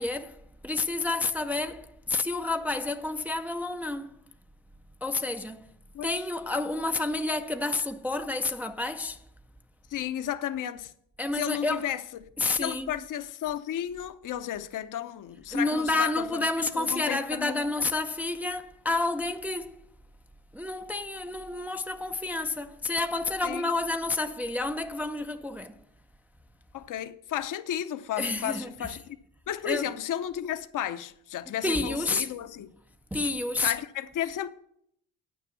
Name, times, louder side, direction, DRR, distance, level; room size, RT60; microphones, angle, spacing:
voice 1, 0.0-4.1 5.0-5.7 6.0-9.2 11.2-11.9 12.4-12.9 15.5-19.8 20.5-25.8 28.2-28.9 29.6-29.9 31.6-32.3 33.1-33.7, left 3 dB, 5° right, 0.4 m, -29 dB
voice 2, 9.9-10.9 11.3-12.2 12.6-17.7 23.4-23.7 26.7-29.2 29.5-32.7 33.6-34.5, left 11 dB, 50° left, 0.7 m, -33 dB
9.1 x 6.3 x 6.9 m
cardioid pair, 90°, 42 cm